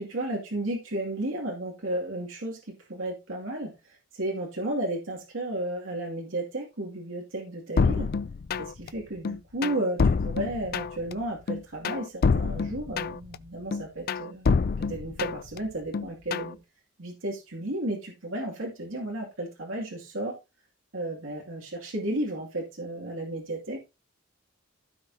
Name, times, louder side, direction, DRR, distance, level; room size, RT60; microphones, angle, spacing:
voice 1, 0.0-8.1 8.6-16.6 17.0-20.4 20.9-23.8, right 1 dB, 85° right, -1 dB, 2.5 m, -33 dB
sound 1, 7.8-8.9 9.2-11.1 11.5-13.4 13.7-15.6 15.9-16.5, left 4 dB, 50° left, 0.4 m, -26 dB
15.5 x 5.9 x 2.8 m, 0.27 s
head